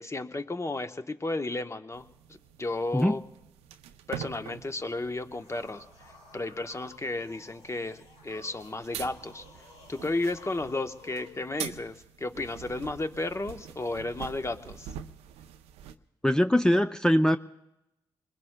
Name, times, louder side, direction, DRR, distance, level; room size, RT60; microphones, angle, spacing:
voice 1, 0.0-2.1 2.6-3.2 4.1-5.8 6.3-9.4 9.9-14.9, left 2 dB, 25° left, 8 dB, 0.9 m, -33 dB
sound 1, 1.9-16.0, right 10 dB, 90° right, 0.5 m, -45 dB
sound 2, 5.1-11.5, left 4 dB, 70° left, 2.5 m, -53 dB
voice 2, 16.2-17.4, equal, 5° left, 6 dB, 0.5 m, -22 dB
25.5 x 21.0 x 2.2 m, 0.89 s
supercardioid pair, 40°, 10 cm